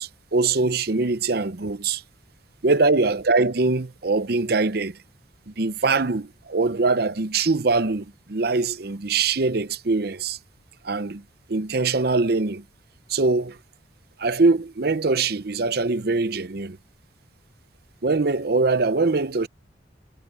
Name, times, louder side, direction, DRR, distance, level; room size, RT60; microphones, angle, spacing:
voice 1, 0.0-2.0 2.6-5.0 5.5-10.4 10.8-11.2 11.5-12.6 13.1-13.6 14.2-16.8 18.0-19.5, right 3 dB, 55° right, 0.7 m, -23 dB
head